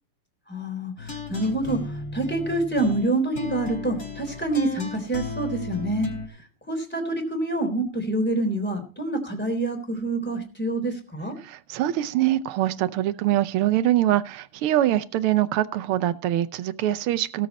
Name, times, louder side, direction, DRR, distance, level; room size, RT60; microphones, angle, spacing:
voice 1, 0.5-6.1 6.7-11.4, right 2 dB, 5° left, 4 dB, 3.5 m, -27 dB
sound 1, 1.0-6.3, left 3 dB, 40° left, 4.5 m, -35 dB
voice 2, 11.4-17.5, right 13 dB, 80° right, 11 dB, 1.6 m, -23 dB
17.5 x 7.7 x 4.1 m, 0.36 s
omnidirectional pair, 2.4 m